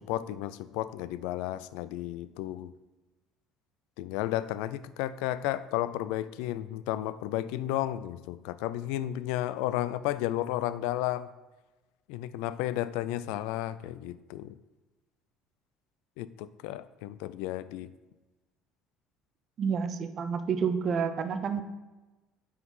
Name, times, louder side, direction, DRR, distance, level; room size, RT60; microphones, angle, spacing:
voice 1, 0.0-2.7 4.0-11.3 12.1-14.6 16.2-17.9, left 14 dB, 85° left, 15 dB, 0.3 m, -33 dB
voice 2, 19.6-21.6, right 6 dB, 30° right, 9 dB, 0.5 m, -29 dB
8.5 x 4.0 x 5.4 m, 1.1 s
cardioid pair, 165°, 0 cm